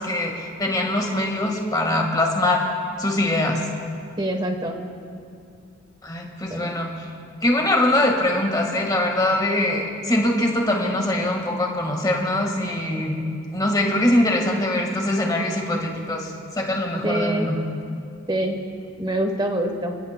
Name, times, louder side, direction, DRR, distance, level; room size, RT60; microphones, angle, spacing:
voice 1, 0.0-2.6 3.0-3.6 6.0-6.9 7.4-13.2 13.5-17.6, left 1 dB, 20° left, 1 dB, 1.5 m, -22 dB
voice 2, 4.2-4.8 6.5-6.8 17.0-17.5 18.3-18.6 19.0-19.9, right 1 dB, 20° right, 5 dB, 1.0 m, -25 dB
28.5 x 15.0 x 2.2 m, 2.5 s
head